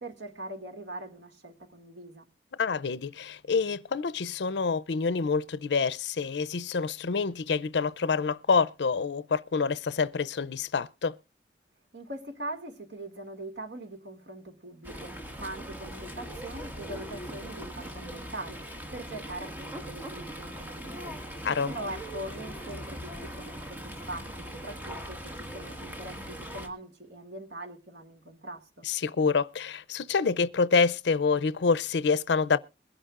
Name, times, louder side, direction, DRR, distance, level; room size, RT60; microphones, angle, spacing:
voice 1, 0.0-2.3 11.9-18.6 18.9-21.2 21.7-28.9, right 1 dB, 90° right, 2.1 m, -42 dB
voice 2, 2.6-11.2 21.4-21.7 28.8-32.6, left 5 dB, 80° left, 0.5 m, -27 dB
Fowl, 14.8-26.7, equal, 10° right, 1.6 m, -40 dB
22.0 x 11.0 x 2.5 m
head